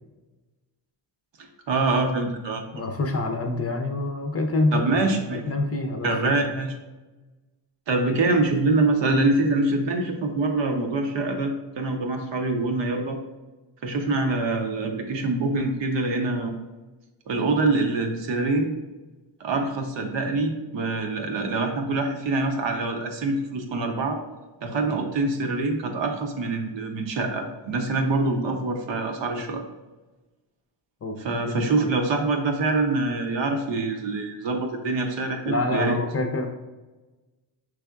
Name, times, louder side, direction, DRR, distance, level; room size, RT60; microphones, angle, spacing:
voice 1, 1.7-2.9 4.7-5.4 6.0-6.7 7.9-13.2 13.8-16.5 17.3-18.7 19.4-24.2 24.6-29.6 31.2-36.0, right 2 dB, 65° right, 4 dB, 0.8 m, -25 dB
voice 2, 2.7-6.5 31.0-31.2 31.5-31.9 35.5-36.5, left 2 dB, 30° left, 3 dB, 0.6 m, -27 dB
4.8 x 3.4 x 2.3 m, 1.2 s
supercardioid pair, 55°, 48 cm